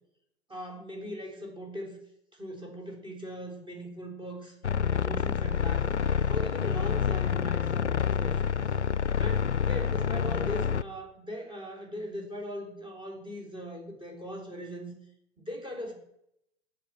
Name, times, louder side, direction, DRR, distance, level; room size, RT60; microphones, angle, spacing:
voice 1, 0.5-2.0 2.4-4.5 4.9-5.8 6.3-8.5 9.2-14.9 15.4-15.9, equal, 15° right, 2 dB, 4.3 m, -40 dB
sound 1, 4.6-10.8, left 7 dB, 90° left, 0.5 m, -28 dB
17.0 x 5.8 x 7.9 m, 0.79 s
figure-of-eight pair, 90°, 33 cm